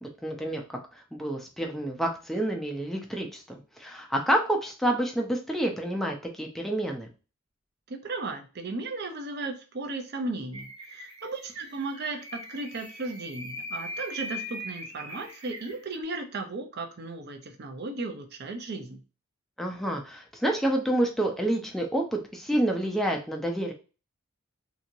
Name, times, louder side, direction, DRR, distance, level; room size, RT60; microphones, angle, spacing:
voice 1, 0.0-7.1 19.6-23.7, right 1 dB, ahead, 1 dB, 0.5 m, -28 dB
voice 2, 7.9-19.0, right 3 dB, 55° right, 5 dB, 0.6 m, -35 dB
sound 1, 10.5-16.0, left 1 dB, 30° right, 0.9 m, -41 dB
2.9 x 2.8 x 2.6 m, 0.33 s
head